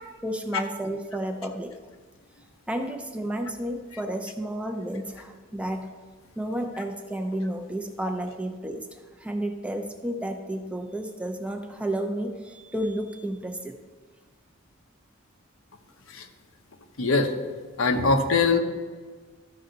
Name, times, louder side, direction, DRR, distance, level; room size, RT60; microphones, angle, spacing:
voice 1, 0.2-1.8 2.7-5.9 6.4-13.8, right 1 dB, 5° right, 4 dB, 0.5 m, -31 dB
voice 2, 17.0-17.3 17.8-18.6, left 4 dB, 80° left, 5 dB, 0.9 m, -21 dB
13.0 x 5.5 x 3.9 m, 1.4 s
head